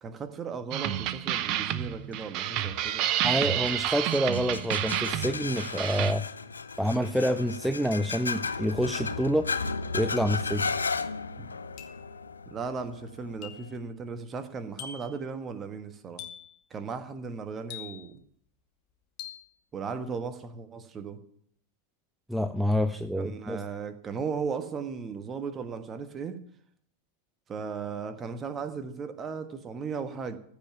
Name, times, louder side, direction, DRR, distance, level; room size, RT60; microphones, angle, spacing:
voice 1, 0.0-3.1 12.5-16.2 16.7-18.2 19.7-21.2 23.2-26.4 27.5-30.4, right 5 dB, 25° right, 10 dB, 1.4 m, -36 dB
sound 1, 0.7-6.1, right 12 dB, 40° right, 0.8 m, -29 dB
sound 2, 2.4-13.7, left 4 dB, 75° left, 0.6 m, -35 dB
voice 2, 3.2-6.3 6.8-9.5 9.9-10.7 22.3-23.6, equal, ahead, 10 dB, 0.5 m, -27 dB
sound 3, 6.7-6.8 7.9-8.5 10.2-10.5 11.8-12.1 13.4-13.8 14.8-15.2 16.2-16.6 17.7-18.2 19.2-19.5, left 9 dB, 40° left, 1.5 m, -44 dB
15.0 x 5.7 x 8.6 m, 0.64 s
figure-of-eight pair, 90°, 0 cm